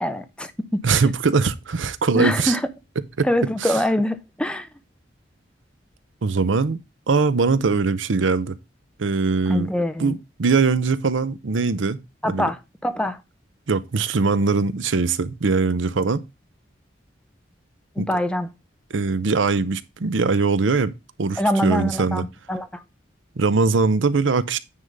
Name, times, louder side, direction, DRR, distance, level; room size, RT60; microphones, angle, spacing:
voice 1, 0.0-1.1 2.1-2.6 3.2-4.7 9.5-10.2 12.2-13.2 18.0-18.5 21.4-22.8, left 1 dB, 5° left, 0.6 m, -24 dB
voice 2, 0.8-2.6 3.2-3.3 3.6-3.8 6.2-6.8 7.1-8.6 9.0-9.7 10.0-12.0 12.2-12.5 13.7-16.2 18.0-18.1 18.9-20.9 21.2-22.2 23.4-24.6, right 4 dB, 85° right, 0.6 m, -21 dB
9.6 x 3.6 x 5.3 m
head